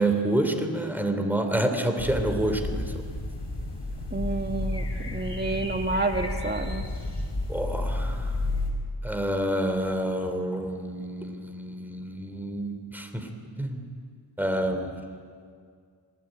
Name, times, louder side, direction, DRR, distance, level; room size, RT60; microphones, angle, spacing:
voice 1, 0.0-3.0 7.5-8.3 9.0-13.3 13.6-13.8 14.4-15.0, right 1 dB, 5° right, 5 dB, 3.4 m, -28 dB
sound 1, 2.0-8.7, left 2 dB, 60° left, 4.7 m, -31 dB
voice 2, 4.1-6.8, right 2 dB, 20° right, 5 dB, 1.9 m, -29 dB
26.5 x 18.5 x 9.2 m, 2.1 s
wide cardioid pair, 50°, 47 cm